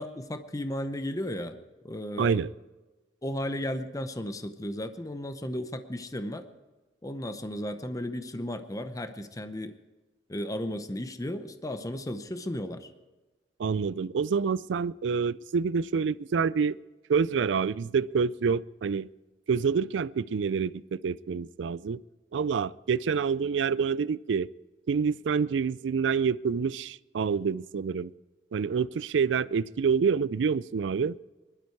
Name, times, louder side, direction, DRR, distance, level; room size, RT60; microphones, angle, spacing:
voice 1, 0.0-1.6 1.8-2.4 3.2-6.4 7.0-9.7 10.3-12.9, left 1 dB, 20° left, 0.8 m, -34 dB
voice 2, 2.2-2.5 13.6-16.8 17.1-19.1 19.5-22.0 22.3-24.5 24.9-28.1 28.5-31.2, right 6 dB, 85° right, 0.4 m, -27 dB
20.0 x 12.5 x 4.6 m
head